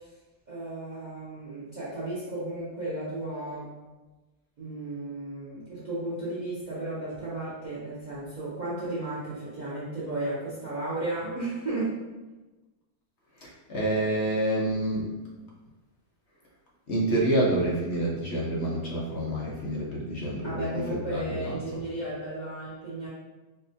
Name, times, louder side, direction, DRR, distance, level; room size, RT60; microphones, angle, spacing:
voice 1, 0.5-3.7 4.6-12.0 20.4-23.1, right 2 dB, 80° right, -8 dB, 0.4 m, -34 dB
voice 2, 13.4-15.1 16.9-21.8, right 1 dB, 60° left, -4 dB, 0.7 m, -28 dB
4.5 x 2.1 x 2.7 m, 1.2 s
omnidirectional pair, 1.8 m